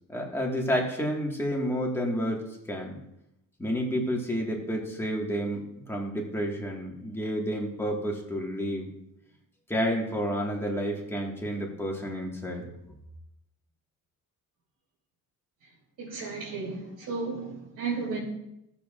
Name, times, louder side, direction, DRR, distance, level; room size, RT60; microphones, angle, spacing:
voice 1, 0.1-2.4 2.7-3.0 3.6-8.9 9.7-12.7, equal, 5° left, 1.8 m, -30 dB
voice 2, 16.0-18.2, right 4 dB, 65° right, 2.8 m, -33 dB
16.5 x 7.1 x 2.5 m
cardioid pair, 145°, 34 cm